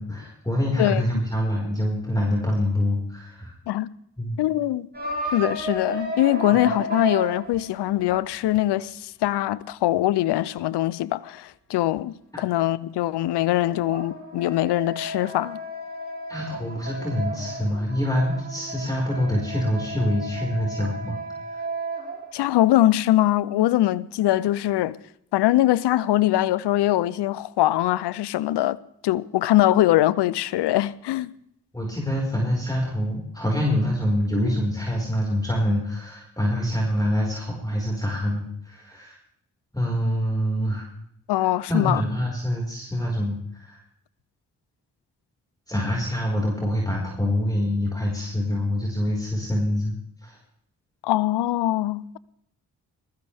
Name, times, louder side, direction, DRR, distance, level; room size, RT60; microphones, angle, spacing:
voice 1, 0.0-3.5 4.2-4.4 6.5-6.6 16.3-21.2 21.5-21.6 31.7-39.2 39.7-40.9 41.4-43.8 45.7-49.9 50.2-50.4, left 1 dB, 10° left, 4.7 m, -25 dB
voice 2, 4.4-4.9 5.3-15.6 22.3-25.0 25.3-28.8 29.0-31.3 41.3-42.0 51.0-52.2, left 14 dB, 85° left, 0.6 m, -22 dB
sound 1, 4.9-8.6 13.3-22.5, right 1 dB, 25° right, 5.8 m, -33 dB
20.5 x 14.5 x 3.4 m
supercardioid pair, 40°, 39 cm